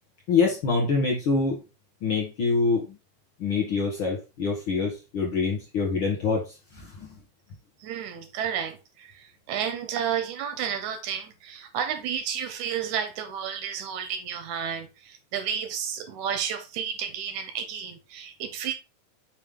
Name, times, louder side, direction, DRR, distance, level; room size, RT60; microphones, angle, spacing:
voice 1, 0.3-1.6 2.0-2.9 3.4-7.1, left 4 dB, 60° left, 1.4 m, -25 dB
voice 2, 7.8-18.7, right 8 dB, 65° right, 2.2 m, -31 dB
5.6 x 5.0 x 3.7 m
omnidirectional pair, 4.2 m